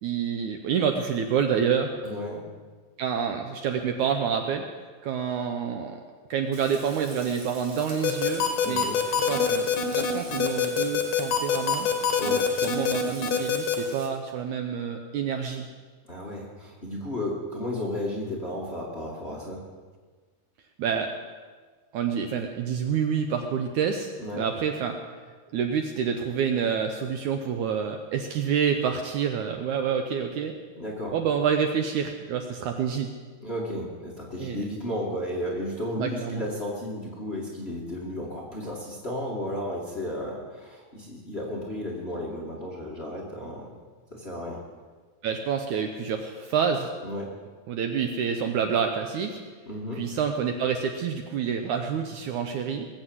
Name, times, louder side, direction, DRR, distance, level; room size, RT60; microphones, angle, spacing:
voice 1, 0.0-1.9 3.0-4.7 5.0-6.0 6.3-11.9 12.6-15.7 20.8-21.1 21.9-25.0 25.5-30.6 31.1-33.1 34.4-34.6 36.0-36.4 45.2-46.9 47.7-49.4 50.0-52.9, right 7 dB, 70° right, 5 dB, 2.0 m, -28 dB
voice 2, 2.0-2.4 8.6-9.0 12.2-12.4 16.1-19.6 24.2-24.5 30.8-31.1 33.4-43.7 44.1-44.6 47.0-47.3 49.6-50.0, left 1 dB, 25° left, -3 dB, 1.7 m, -33 dB
Frying (food), 6.5-14.1, right 3 dB, 55° right, 3.6 m, -46 dB
sound 1, 8.0-13.8, left 7 dB, 65° left, 2.9 m, -24 dB
20.0 x 8.0 x 7.8 m, 1.5 s
omnidirectional pair, 4.1 m